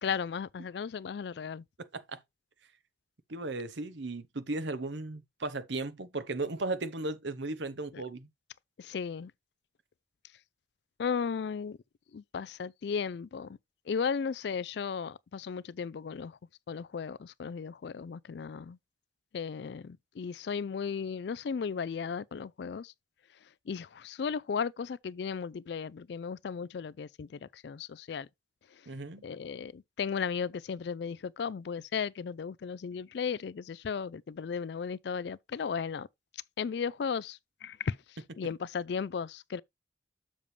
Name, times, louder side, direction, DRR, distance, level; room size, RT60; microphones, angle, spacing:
voice 1, 0.0-1.6 7.9-8.0 8.8-9.3 11.0-11.8 12.1-13.6 13.9-16.3 16.7-18.8 19.3-22.9 23.7-28.3 29.2-36.1 36.6-38.0 38.4-39.6, left 6 dB, 60° left, 0.4 m, -35 dB
voice 2, 1.8-2.2 3.3-8.3 28.9-29.2, right 2 dB, 70° right, 0.9 m, -36 dB
7.2 x 6.8 x 3.2 m
head